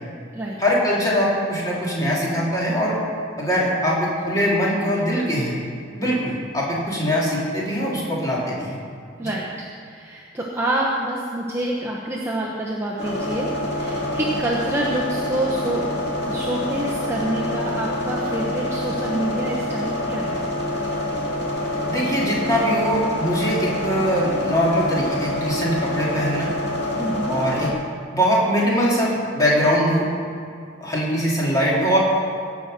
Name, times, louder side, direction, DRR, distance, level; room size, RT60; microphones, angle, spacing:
voice 1, 0.6-3.0 3.4-5.5 5.9-8.8 9.2-9.3 21.9-26.5 27.3-27.7 28.1-30.1 30.8-32.0, equal, 20° left, -6 dB, 2.9 m, -22 dB
voice 2, 9.2-15.8 16.2-20.4 27.0-27.4, right 1 dB, 15° right, -4 dB, 1.0 m, -27 dB
sound 1, 13.0-27.7, left 1 dB, 55° left, 2.5 m, -26 dB
17.0 x 6.1 x 6.5 m, 2.3 s
head